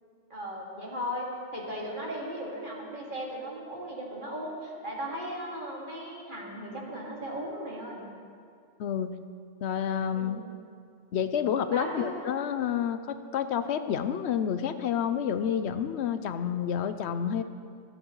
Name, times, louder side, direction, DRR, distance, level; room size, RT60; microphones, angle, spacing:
voice 1, 0.3-8.1 10.1-10.5 11.7-12.3, equal, 45° right, -4 dB, 2.6 m, -37 dB
voice 2, 8.8-9.2 9.6-10.4 11.1-17.4, left 8 dB, 75° left, 10 dB, 0.8 m, -29 dB
26.0 x 8.8 x 3.1 m, 2.3 s
omnidirectional pair, 1.1 m